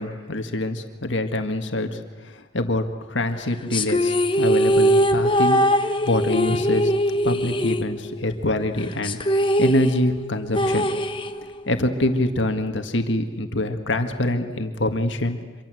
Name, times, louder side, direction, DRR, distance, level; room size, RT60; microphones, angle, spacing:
voice 1, 0.0-6.9 7.2-10.9 11.7-15.4, left 1 dB, 70° left, 6 dB, 1.8 m, -25 dB
sound 1, 3.7-8.4 8.6-8.7 9.0-11.7, equal, 25° left, 1.2 m, -21 dB
26.0 x 24.0 x 7.8 m, 1.3 s
head